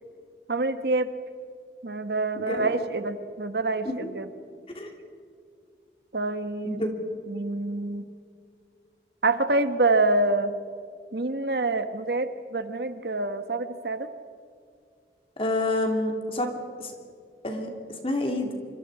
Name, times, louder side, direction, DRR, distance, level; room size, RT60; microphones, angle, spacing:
voice 1, 0.5-1.1 1.8-4.3 6.1-6.8 7.3-8.1 9.2-10.5 11.1-14.1, right 2 dB, 70° right, 10 dB, 1.2 m, -26 dB
voice 2, 2.4-2.7 3.8-4.1 4.7-4.9 6.6-6.9 15.4-16.5 16.8-16.9 17.4-18.5, left 1 dB, 30° left, 3 dB, 2.9 m, -28 dB
26.5 x 25.0 x 4.9 m, 2.3 s
head